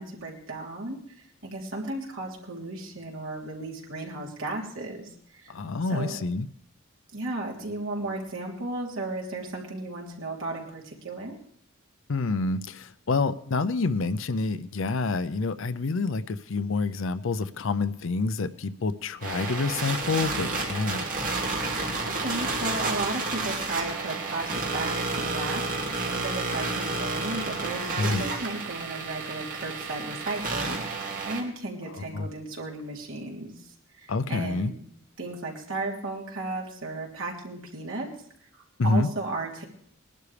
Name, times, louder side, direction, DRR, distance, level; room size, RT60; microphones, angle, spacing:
voice 1, 0.0-5.5 5.9-6.1 7.1-11.4 22.1-33.6 34.0-34.9 35.2-38.1 38.8-39.6, right 2 dB, 70° right, -2 dB, 3.4 m, -35 dB
voice 2, 5.5-6.5 12.1-21.0 28.0-28.2 31.9-32.3 34.1-34.7 38.8-39.1, left 3 dB, 65° left, 13 dB, 0.5 m, -27 dB
sound 1, 19.2-31.4, right 3 dB, 40° right, 2.5 m, -31 dB
21.0 x 12.0 x 3.3 m, 0.62 s
head